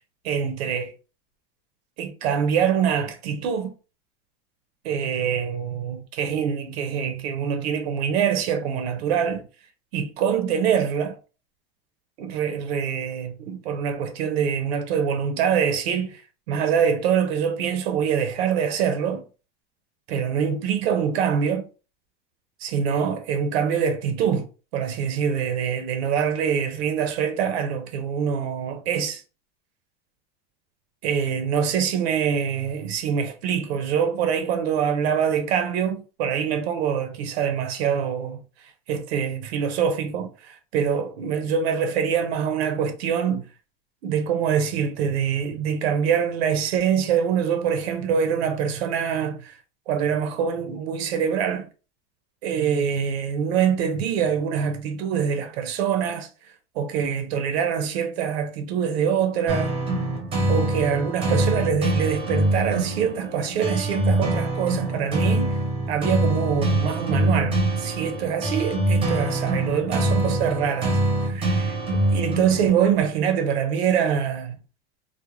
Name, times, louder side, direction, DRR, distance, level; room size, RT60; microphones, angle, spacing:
voice 1, 0.2-0.9 2.0-3.7 4.8-9.4 9.9-11.2 12.2-16.2 16.5-19.2 20.1-21.6 22.6-29.2 31.0-38.4 38.9-43.4 44.0-49.6 49.9-51.7 52.4-56.3 56.8-59.7 60.5-65.6 65.9-71.8 72.1-74.6, right 7 dB, 85° right, 0.6 m, -24 dB
sound 1, 59.5-73.0, right 1 dB, 20° right, 0.7 m, -24 dB
2.4 x 2.1 x 3.0 m
supercardioid pair, 140°, 30 cm